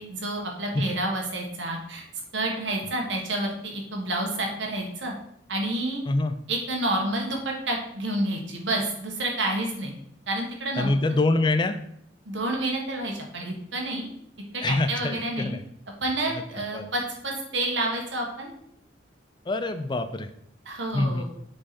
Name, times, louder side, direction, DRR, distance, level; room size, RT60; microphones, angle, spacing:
voice 1, 0.0-2.0 2.3-5.1 5.5-6.0 6.5-9.9 10.3-10.9 12.2-14.1 14.5-15.5 16.0-18.5 20.6-21.2, right 1 dB, 85° right, 0 dB, 1.7 m, -29 dB
voice 2, 6.1-6.4 10.8-11.8 14.6-15.7 16.3-16.9 19.5-20.3 20.9-21.2, left 2 dB, 25° left, 9 dB, 0.4 m, -25 dB
7.2 x 4.9 x 4.3 m, 0.71 s
head